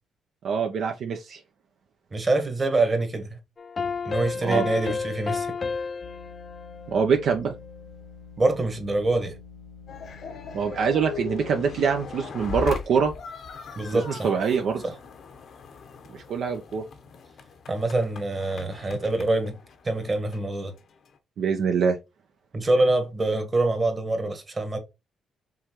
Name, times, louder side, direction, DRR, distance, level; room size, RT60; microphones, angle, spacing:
voice 1, 0.4-1.4 4.4-4.7 6.9-7.5 10.5-13.1 13.9-14.8 16.1-16.8 21.4-22.0, right 6 dB, 65° right, 0.6 m, -24 dB
voice 2, 2.1-3.4 4.0-5.5 8.4-9.4 13.8-14.3 14.8-14.9 17.7-19.6 19.8-20.7 22.5-24.8, right 2 dB, 30° right, 1.4 m, -25 dB
sound 1, 3.6-7.8, left 5 dB, 35° left, 0.4 m, -32 dB
sound 2, 6.0-12.5, left 5 dB, 80° left, 1.3 m, -47 dB
sound 3, 9.9-21.2, left 5 dB, 60° left, 0.8 m, -40 dB
5.5 x 3.2 x 3.0 m
cardioid pair, 90°, 0 cm